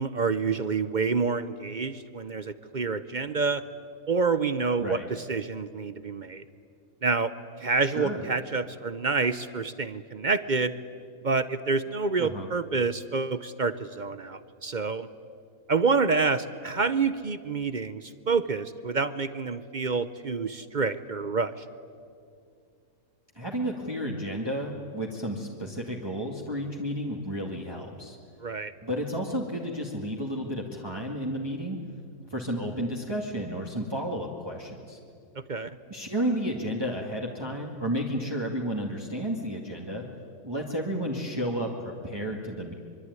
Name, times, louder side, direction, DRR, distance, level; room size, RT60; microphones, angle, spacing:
voice 1, 0.0-3.6 4.1-6.4 7.0-7.3 7.6-10.7 11.2-15.1 15.7-21.6 28.4-28.7 35.5-35.7, right 4 dB, 45° right, 13 dB, 0.7 m, -28 dB
voice 2, 7.8-8.2 12.2-12.5 23.3-28.2 28.8-31.8 32.3-35.0 35.9-40.0 40.4-42.7, equal, 15° right, -1 dB, 2.1 m, -32 dB
24.0 x 24.0 x 9.7 m, 2.3 s
omnidirectional pair, 1.5 m